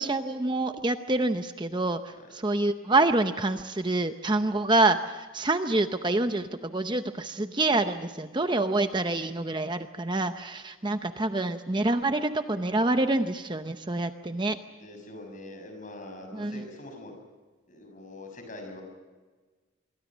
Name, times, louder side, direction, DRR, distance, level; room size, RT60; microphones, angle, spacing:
voice 1, 0.0-14.6 16.3-16.7, right 2 dB, 20° right, 8 dB, 0.7 m, -27 dB
voice 2, 14.8-17.1 17.7-18.8, left 1 dB, 40° left, 5 dB, 6.6 m, -43 dB
27.0 x 23.0 x 6.2 m, 1.3 s
head